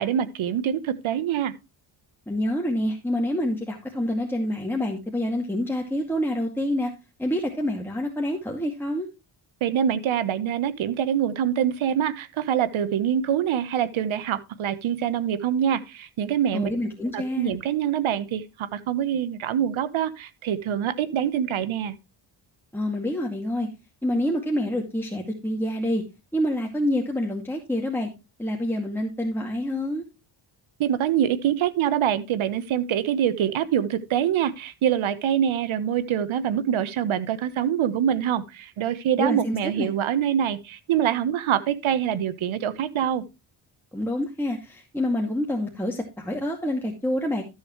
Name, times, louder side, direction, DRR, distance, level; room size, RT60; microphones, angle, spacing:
voice 1, 0.0-1.5 9.6-16.7 17.1-21.9 30.8-43.2, right 9 dB, 70° right, 1.2 m, -25 dB
voice 2, 2.3-6.9 7.2-9.1 16.5-17.6 22.7-23.7 24.0-26.0 26.3-28.1 28.4-30.0 39.2-39.9 43.9-47.4, left 1 dB, 5° left, 2.3 m, -27 dB
13.5 x 7.0 x 3.1 m
cardioid pair, 70°, 49 cm